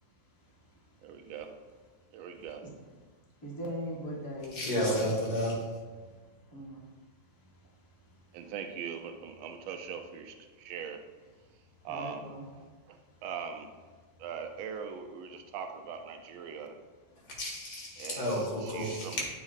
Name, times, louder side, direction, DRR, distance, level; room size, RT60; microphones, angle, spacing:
voice 1, 1.0-1.5 2.1-2.6 8.3-11.0 11.8-13.7 14.2-16.8 18.0-19.2, right 6 dB, 90° right, 6 dB, 1.4 m, -41 dB
voice 2, 3.4-5.2 6.5-6.9 11.9-12.5, equal, 20° left, -3 dB, 0.6 m, -40 dB
voice 3, 4.5-5.5 17.3-19.2, equal, 55° left, -3 dB, 2.0 m, -31 dB
8.0 x 3.2 x 4.0 m, 1.4 s
omnidirectional pair, 2.1 m